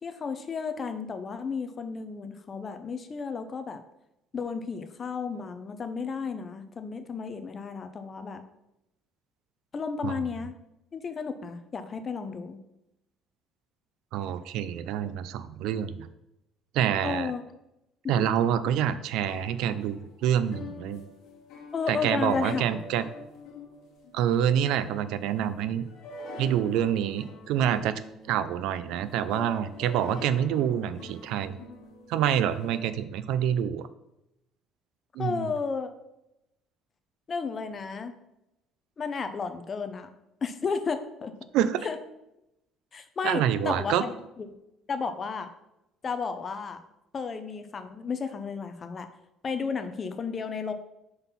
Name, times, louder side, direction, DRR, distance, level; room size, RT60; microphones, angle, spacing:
voice 1, 0.0-3.8 4.3-8.4 9.7-10.6 10.9-12.6 17.0-17.5 18.2-18.3 21.7-22.6 35.2-35.9 37.3-38.2 39.0-40.1 40.4-41.3 41.8-42.0 42.9-44.5 44.9-45.5 46.0-46.8 47.1-49.1 49.4-50.7, left 5 dB, 30° left, 9 dB, 0.6 m, -33 dB
voice 2, 14.1-16.0 16.7-17.3 18.1-21.0 21.9-23.1 24.1-25.8 26.4-28.0 28.3-31.6 32.1-33.9 35.2-35.5 41.5-41.9 43.2-44.0, right 10 dB, 80° right, 14 dB, 0.4 m, -27 dB
sound 1, 19.2-32.9, left 2 dB, 65° left, 1.5 m, -45 dB
5.4 x 4.0 x 5.7 m, 0.88 s
cardioid pair, 150°, 0 cm